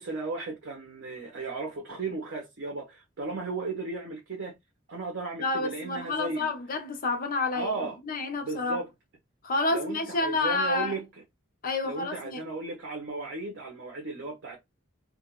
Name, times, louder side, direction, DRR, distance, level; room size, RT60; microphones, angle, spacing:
voice 1, 0.0-4.5 4.9-6.5 7.5-8.0 8.4-8.9 9.7-11.1 11.8-14.6, right 3 dB, 60° right, 0.8 m, -35 dB
voice 2, 5.4-7.7 8.1-8.8 9.4-10.9 11.6-12.4, left 3 dB, 45° left, 0.6 m, -29 dB
2.4 x 2.2 x 2.9 m
head